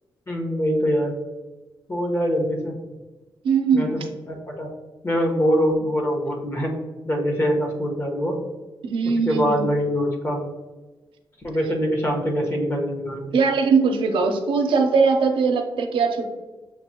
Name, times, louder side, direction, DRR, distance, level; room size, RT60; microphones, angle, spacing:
voice 1, 0.3-1.1 1.9-2.7 3.7-4.7 5.0-6.7 7.0-8.4 9.2-10.4 11.4-13.2, equal, 30° left, 0 dB, 1.1 m, -23 dB
voice 2, 3.4-4.1 8.8-9.7 13.3-16.3, right 5 dB, 90° right, 4 dB, 0.6 m, -20 dB
6.8 x 2.6 x 2.8 m, 1.2 s
cardioid pair, 110°, 9 cm